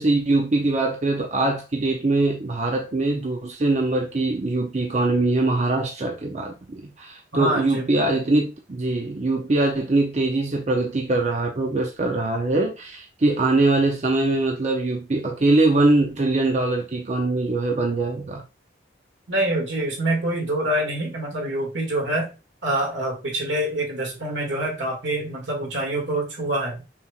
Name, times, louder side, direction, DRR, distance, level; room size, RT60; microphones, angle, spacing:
voice 1, 0.0-18.4, right 2 dB, 40° right, 0.5 m, -22 dB
voice 2, 7.3-7.9 19.3-22.3 22.6-26.8, right 1 dB, 85° right, 1.9 m, -25 dB
5.7 x 3.3 x 2.3 m
head